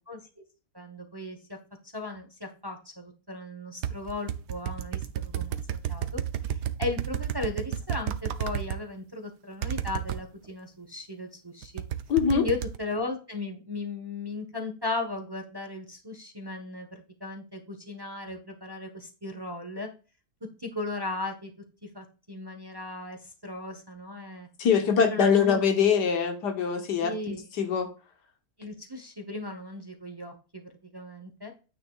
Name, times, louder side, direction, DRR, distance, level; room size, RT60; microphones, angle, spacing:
voice 1, 0.7-1.6 1.9-5.6 5.9-11.8 12.3-19.9 20.6-21.5 21.8-24.5 24.9-25.6 27.0-27.4 28.6-30.6 30.9-31.5, left 2 dB, 15° right, 0.9 m, -36 dB
sound 1, 3.8-8.8 9.6-10.2 11.6-12.8, right 10 dB, 80° right, 1.2 m, -31 dB
voice 2, 12.1-12.4 24.6-27.1 27.6-27.9, left 6 dB, 85° left, 1.8 m, -23 dB
9.5 x 9.2 x 2.4 m
omnidirectional pair, 1.8 m